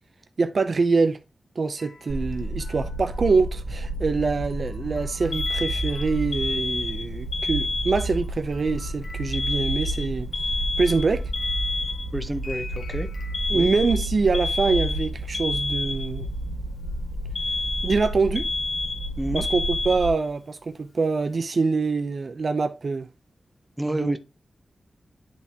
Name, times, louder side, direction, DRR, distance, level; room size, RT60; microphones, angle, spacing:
voice 1, 0.4-1.2 1.6-10.3 10.8-11.2 13.5-16.3 17.8-18.5 19.3-23.1 23.8-24.2, right 4 dB, 50° right, 0.5 m, -24 dB
sound 1, 1.8-6.8 8.0-13.5, left 3 dB, 75° left, 0.9 m, -47 dB
sound 2, 2.1-20.1, right 1 dB, 80° right, 1.4 m, -31 dB
Alarm, 5.3-8.3 9.3-12.3 13.3-16.3 17.3-20.3, left 3 dB, 45° left, 0.4 m, -29 dB
voice 2, 12.1-13.1 13.5-13.7 19.2-19.5 23.8-24.2, right 1 dB, 5° right, 0.7 m, -29 dB
10.5 x 3.6 x 2.8 m
wide cardioid pair, 130°, 0 cm